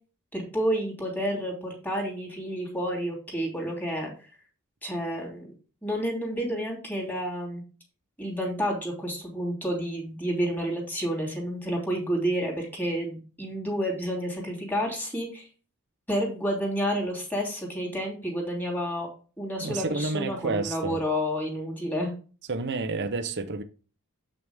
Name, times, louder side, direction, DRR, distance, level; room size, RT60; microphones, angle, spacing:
voice 1, 0.3-4.1 4.8-5.5 5.8-7.6 8.2-15.5 16.1-19.1 19.4-22.1, equal, 10° left, 3.2 m, -30 dB
voice 2, 19.6-21.0 22.5-23.6, right 3 dB, 50° right, 0.8 m, -30 dB
8.1 x 6.2 x 3.5 m
head